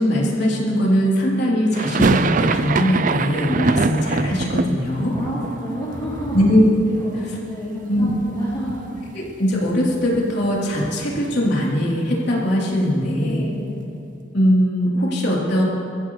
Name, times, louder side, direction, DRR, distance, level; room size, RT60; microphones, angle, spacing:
voice 1, 0.0-5.1 6.3-6.7 7.9-8.1 9.1-13.4 14.3-15.6, equal, 55° left, -4 dB, 3.5 m, -20 dB
sound 1, 1.7-7.7 7.9-8.8 9.0-9.1 9.4-11.6, right 3 dB, 40° right, 0.5 m, -24 dB
voice 2, 5.1-6.4 6.9-8.9 13.2-13.8, equal, 25° left, -9 dB, 3.0 m, -30 dB
24.0 x 14.5 x 3.3 m, 2.8 s
head